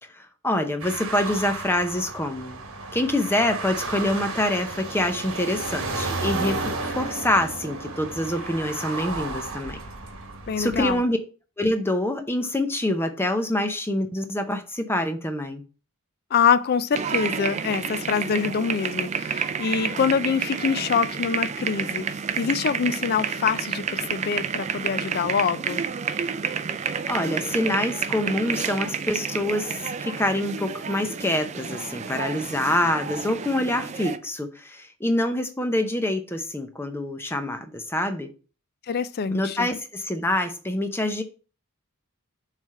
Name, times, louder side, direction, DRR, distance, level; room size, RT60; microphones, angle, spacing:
voice 1, 0.1-2.6 2.9-9.8 10.6-11.2 11.6-15.6 27.1-38.3 39.3-41.2, left 1 dB, 10° left, 0.7 m, -26 dB
sound 1, 0.8-11.0, right 3 dB, 65° right, 1.2 m, -33 dB
voice 2, 10.5-11.0 16.3-22.0 22.4-25.8 38.9-39.7, left 6 dB, 45° left, 0.4 m, -25 dB
sound 2, 16.9-34.2, right 6 dB, 30° right, 0.3 m, -30 dB
7.1 x 3.3 x 4.2 m
head